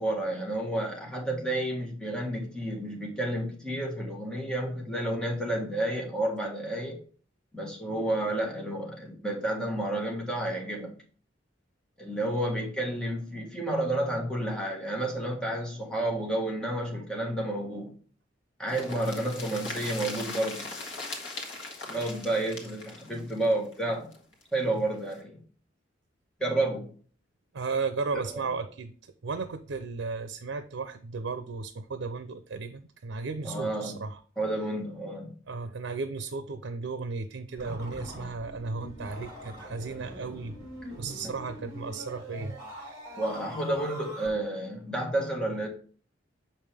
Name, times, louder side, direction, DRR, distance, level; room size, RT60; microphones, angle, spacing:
voice 1, 0.0-7.0 7.5-10.9 12.0-17.9 18.6-20.7 21.9-24.1 24.5-25.4 26.4-26.9 28.3-28.4 33.4-34.0 34.4-35.4 43.1-45.7, right 1 dB, 5° left, 1.6 m, -30 dB
sound 1, 18.7-24.4 24.7-24.8 25.1-25.2, left 2 dB, 75° left, 1.6 m, -39 dB
voice 2, 27.5-34.2 35.5-40.7 41.0-43.2, right 4 dB, 85° right, 0.6 m, -35 dB
sound 2, 37.6-44.3, equal, 20° right, 3.2 m, -43 dB
7.1 x 5.5 x 3.4 m
head